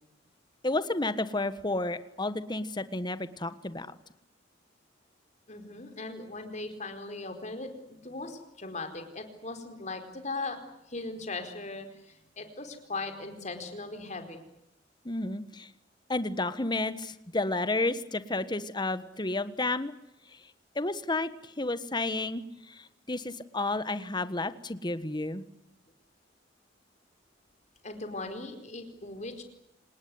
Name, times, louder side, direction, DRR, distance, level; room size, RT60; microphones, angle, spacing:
voice 1, 0.6-3.9 15.0-15.7 16.1-19.9 20.7-25.4, left 2 dB, 25° left, 12 dB, 1.4 m, -31 dB
voice 2, 5.5-10.6 10.9-14.4 18.3-18.5 27.8-29.4, left 3 dB, 40° left, 7 dB, 4.6 m, -39 dB
27.5 x 19.5 x 9.6 m, 0.84 s
head